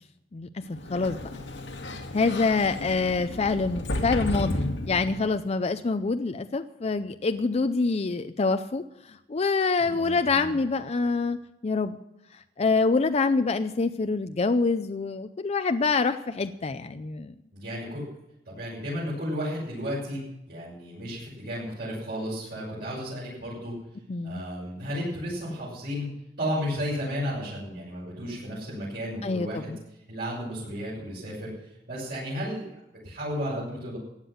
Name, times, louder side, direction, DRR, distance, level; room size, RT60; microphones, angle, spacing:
voice 1, 0.3-1.2 2.1-11.4 11.6-12.0 12.6-17.3 24.1-24.4 29.2-29.8, left 4 dB, 35° left, 9 dB, 0.5 m, -26 dB
Sliding door, 0.7-5.4, left 1 dB, 85° left, 1.9 m, -33 dB
voice 2, 9.8-10.6 17.5-18.1 18.4-20.2 20.5-23.7 24.2-26.1 26.4-29.7 30.1-31.5 31.9-32.7 33.0-34.0, equal, 60° right, -9 dB, 6.5 m, -33 dB
15.5 x 9.7 x 6.4 m, 0.88 s
head